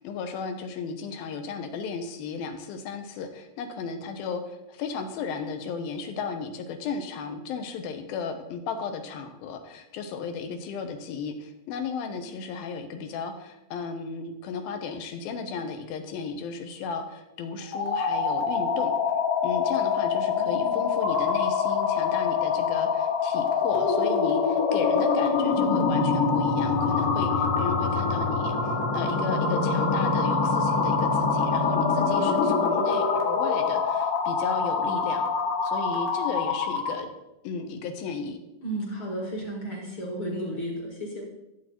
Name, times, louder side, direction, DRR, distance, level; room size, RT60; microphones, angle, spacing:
voice 1, 0.0-18.9 19.4-35.3 35.6-37.1 37.4-38.4, left 5 dB, 70° left, 7 dB, 2.6 m, -34 dB
sound 1, 17.6-37.0, left 5 dB, 85° left, 3.7 m, -25 dB
voice 2, 20.2-20.9 32.2-32.6 38.6-41.3, right 1 dB, 40° left, -1 dB, 2.0 m, -34 dB
14.0 x 8.0 x 4.4 m, 0.92 s
omnidirectional pair, 4.7 m